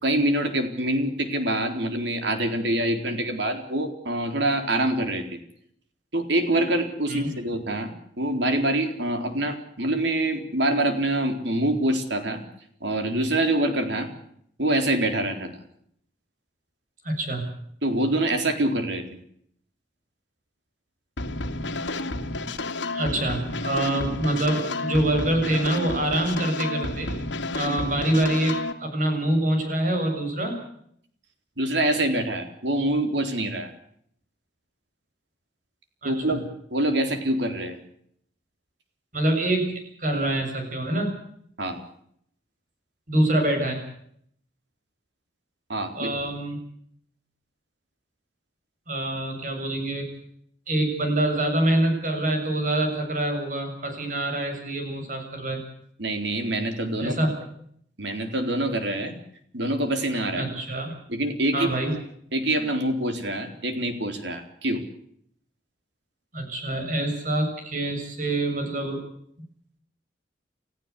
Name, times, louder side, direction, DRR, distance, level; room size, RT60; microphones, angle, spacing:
voice 1, 0.0-5.4 6.1-12.4 12.8-14.1 14.6-15.6 17.8-19.0 31.6-33.7 36.0-36.4 36.7-37.8 41.6-41.8 45.7-46.1 56.0-57.2 58.0-59.1 59.5-60.5 61.1-62.0 62.3-64.8, right 1 dB, 75° right, 6 dB, 4.0 m, -25 dB
voice 2, 17.0-17.5 22.9-27.2 27.5-30.6 36.0-36.4 39.1-41.2 43.1-43.8 45.9-46.6 48.9-50.1 50.7-55.6 57.0-57.3 60.3-60.9 61.5-61.9 66.3-69.0, right 1 dB, 45° right, 4 dB, 7.3 m, -25 dB
sound 1, 21.2-28.7, left 2 dB, 90° left, 2.1 m, -31 dB
30.0 x 15.0 x 8.4 m, 0.68 s
head